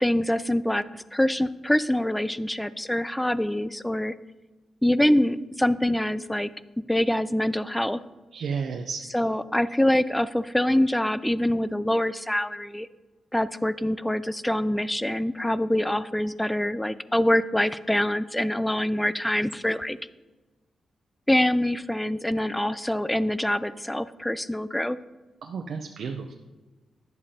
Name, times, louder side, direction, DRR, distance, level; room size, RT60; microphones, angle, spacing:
voice 1, 0.0-4.1 4.8-6.5 6.9-8.0 9.1-12.9 13.3-20.0 21.3-25.0, left 1 dB, 10° left, 16 dB, 0.4 m, -25 dB
voice 2, 8.3-9.0 25.4-26.3, right 5 dB, 70° right, 4 dB, 0.6 m, -32 dB
10.5 x 7.5 x 2.8 m, 1.2 s
cardioid pair, 60°, 0 cm